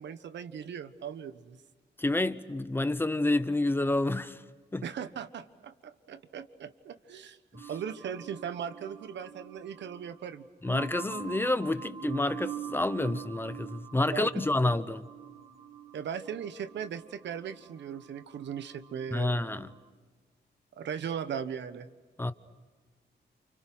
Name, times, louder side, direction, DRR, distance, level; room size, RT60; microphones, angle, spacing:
voice 1, 0.0-1.6 4.8-7.4 7.7-10.4 14.1-14.3 15.9-19.4 20.8-21.9, right 8 dB, 80° right, 1.3 m, -38 dB
voice 2, 2.0-4.4 4.7-4.8 7.5-7.7 10.6-15.0 19.1-19.7 22.2-22.3, left 2 dB, 10° left, 0.8 m, -29 dB
sound 1, 7.6-19.8, right 8 dB, 35° right, 1.9 m, -45 dB
29.5 x 29.0 x 6.2 m
wide cardioid pair, 165°, 18 cm